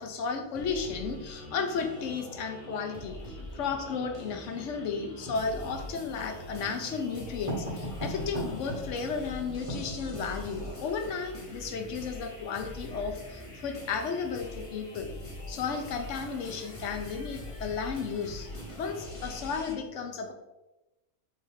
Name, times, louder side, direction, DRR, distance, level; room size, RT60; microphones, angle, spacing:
voice 1, 0.0-3.2 3.5-15.1 15.5-18.5 18.8-20.3, left 5 dB, 65° left, 5 dB, 0.8 m, -34 dB
sound 1, 0.5-19.8, left 1 dB, 30° left, 0.6 m, -43 dB
Writing, 5.3-11.2, equal, 25° right, 1.5 m, -39 dB
3.4 x 3.3 x 4.6 m, 1.0 s
omnidirectional pair, 1.5 m